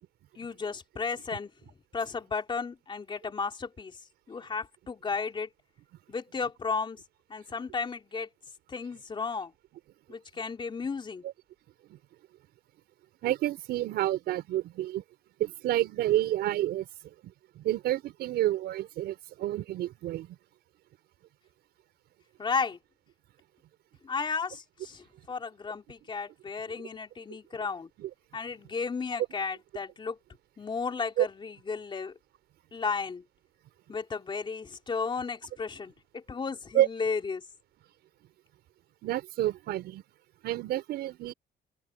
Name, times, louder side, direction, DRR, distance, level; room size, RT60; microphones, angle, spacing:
voice 1, 0.4-1.5 1.9-4.0 4.3-5.5 6.1-7.0 7.3-8.3 8.7-9.5 10.1-11.2 22.4-22.8 24.0-27.9 28.3-30.2 30.6-32.1 32.7-33.2 33.9-37.4, left 5 dB, 30° left, 4.2 m, -34 dB
voice 2, 13.2-15.0 15.4-17.1 17.6-20.4 28.0-28.1 31.2-31.3 36.7-36.9 39.0-40.0 40.4-41.3, right 14 dB, 75° right, 5.2 m, -29 dB
open air
cardioid pair, 110°, 17 cm